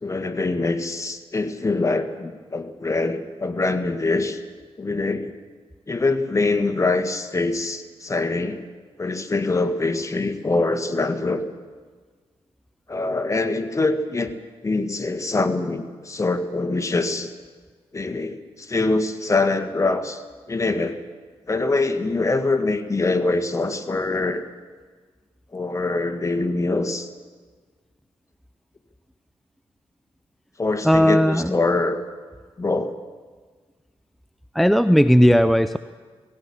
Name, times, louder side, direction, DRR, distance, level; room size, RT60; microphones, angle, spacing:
voice 1, 0.0-4.4 4.8-5.3 5.9-8.6 9.0-11.4 12.9-14.3 14.6-17.3 17.9-20.2 20.5-21.0 21.5-24.4 25.5-27.1 30.6-32.0 32.6-33.0, left 3 dB, 30° left, 8 dB, 1.8 m, -24 dB
voice 2, 30.8-31.5 34.5-35.8, equal, ahead, 12 dB, 0.5 m, -16 dB
18.0 x 17.0 x 8.8 m, 1.5 s
cardioid pair, 70°, 10 cm